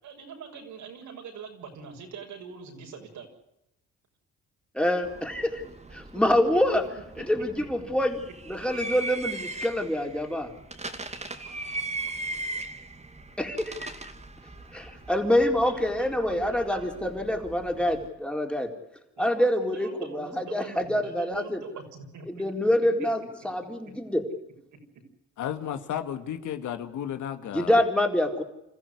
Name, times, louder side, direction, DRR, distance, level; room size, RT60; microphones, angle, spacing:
voice 1, 0.0-3.3 6.5-6.6 11.7-12.4 15.5-16.9 19.2-22.3 23.0-23.1 23.8-23.9, right 6 dB, 75° right, 2 dB, 6.4 m, -43 dB
voice 2, 4.7-5.6 5.9-6.8 7.2-8.2 8.5-10.5 13.4-14.1 14.7-18.7 19.2-21.6 22.3-24.2 27.5-28.4, left 1 dB, 5° left, 3 dB, 4.1 m, -26 dB
sound 1, 5.0-18.1, right 2 dB, 20° right, 2.4 m, -39 dB
voice 3, 25.4-27.8, left 9 dB, 80° left, 8 dB, 2.1 m, -33 dB
27.5 x 14.5 x 9.7 m, 0.88 s
cardioid pair, 90°, 30 cm